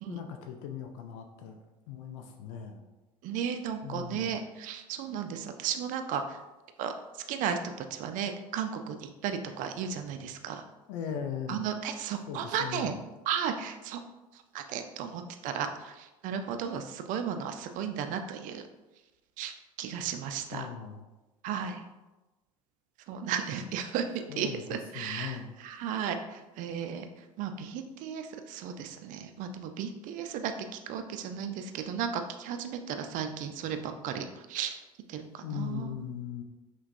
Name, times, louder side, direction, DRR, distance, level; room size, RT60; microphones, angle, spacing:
voice 1, 0.1-1.6 1.9-2.8 3.8-4.3 10.9-11.7 12.3-12.9 20.5-21.0 24.3-25.5 35.4-36.4, left 8 dB, 60° left, 4 dB, 0.4 m, -39 dB
voice 2, 3.2-6.4 6.8-6.9 7.3-10.6 11.5-12.9 13.3-14.0 14.5-18.7 19.4-19.5 19.8-20.7 21.4-21.8 23.1-27.1 27.4-34.8 35.1-35.9, right 7 dB, 45° right, 7 dB, 0.4 m, -34 dB
5.7 x 2.2 x 2.6 m, 1.1 s
figure-of-eight pair, 65°, 18 cm